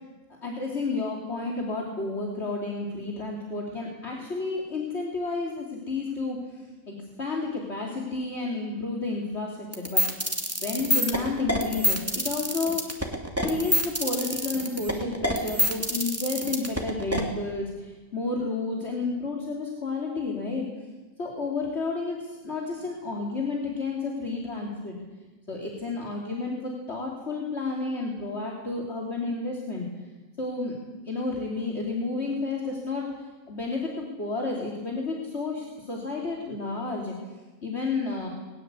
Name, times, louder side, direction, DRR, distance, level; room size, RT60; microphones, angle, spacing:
voice 1, 0.4-10.1 10.6-12.9 13.4-20.7 21.2-25.0 25.5-29.8 30.4-30.7 31.0-37.1 37.6-38.3, left 3 dB, 50° left, -1 dB, 3.3 m, -31 dB
sound 1, 9.7-17.2, equal, 10° right, 2.8 m, -26 dB
21.0 x 19.5 x 8.3 m, 1.2 s
omnidirectional pair, 1.4 m